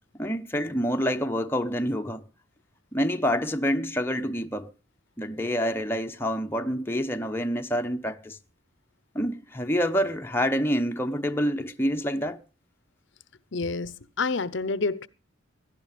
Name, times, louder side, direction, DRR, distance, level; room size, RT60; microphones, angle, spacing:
voice 1, 0.2-2.2 2.9-4.7 5.2-8.4 9.1-12.4, equal, 10° left, 0.9 m, -27 dB
voice 2, 13.5-15.1, left 3 dB, 60° left, 0.8 m, -28 dB
17.5 x 11.5 x 5.1 m
head